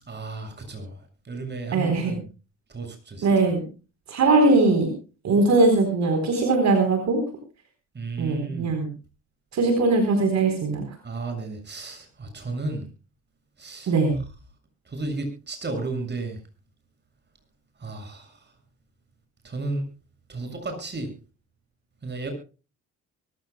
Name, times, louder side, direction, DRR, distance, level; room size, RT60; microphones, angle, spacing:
voice 1, 0.1-1.0 1.3-2.3 2.7-3.3 7.9-8.7 11.0-12.9 13.6-13.9 14.9-16.4 17.8-18.4 19.4-19.9 20.3-21.1 22.0-22.3, right 3 dB, 35° right, 5 dB, 6.9 m, -33 dB
voice 2, 1.7-2.1 3.2-3.6 4.1-4.9 5.2-7.2 8.2-8.9 9.5-10.8 13.9-14.1, right 3 dB, 65° right, 5 dB, 4.2 m, -20 dB
23.5 x 15.5 x 2.3 m, 0.34 s
cardioid pair, 90°, 30 cm